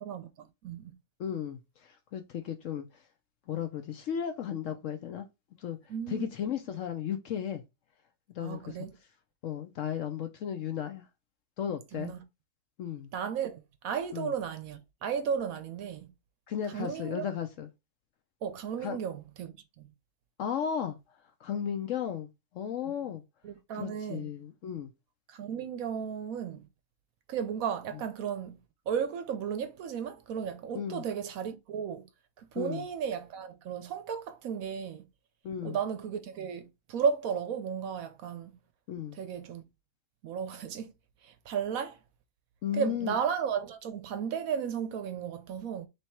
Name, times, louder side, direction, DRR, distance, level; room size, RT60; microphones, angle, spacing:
voice 1, 0.0-0.9 5.9-6.3 8.4-9.0 11.9-12.2 13.1-16.1 16.7-17.3 18.4-19.9 23.4-24.3 25.3-26.7 27.3-28.6 28.9-32.1 32.4-35.1 35.6-38.5 39.2-39.6 40.2-40.9 41.2-42.0 42.7-45.9, right 7 dB, 70° right, 0.9 m, -34 dB
voice 2, 1.2-2.9 3.5-5.3 5.6-5.8 6.1-7.6 8.3-8.9 9.4-11.1 11.6-12.1 12.8-13.1 14.1-14.3 16.5-17.7 18.8-19.0 20.4-21.0 21.4-23.2 23.8-24.9 30.7-31.0 32.6-32.9 35.4-35.8 38.9-39.2 42.6-43.2, left 9 dB, 65° left, 0.8 m, -35 dB
3.4 x 3.2 x 4.3 m
omnidirectional pair, 1.7 m